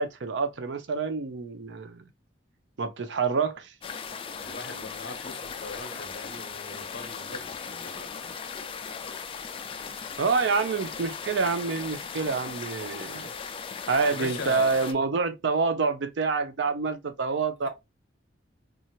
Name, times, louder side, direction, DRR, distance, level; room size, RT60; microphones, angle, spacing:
voice 1, 0.0-2.0 2.8-3.7 10.2-13.3 13.9-17.7, right 4 dB, 65° right, 0.5 m, -27 dB
sound 1, 3.8-14.9, left 6 dB, 30° left, 0.3 m, -38 dB
voice 2, 4.4-8.1 14.0-14.9, left 3 dB, 55° left, 0.8 m, -40 dB
2.8 x 2.4 x 2.7 m
head